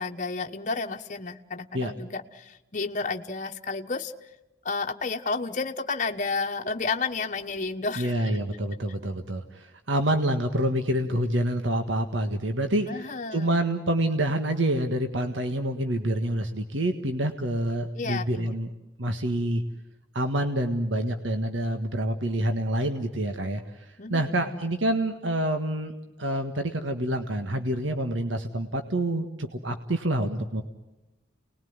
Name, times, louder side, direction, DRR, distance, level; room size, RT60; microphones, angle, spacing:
voice 1, 0.0-4.1 4.6-8.4 12.9-13.6 18.0-18.5 24.0-24.7, left 4 dB, 40° left, 4 dB, 1.2 m, -31 dB
voice 2, 8.0-18.7 19.0-19.6 20.1-25.9 26.2-30.6, right 1 dB, 75° right, 7 dB, 1.7 m, -27 dB
29.5 x 20.5 x 9.6 m, 1.0 s
head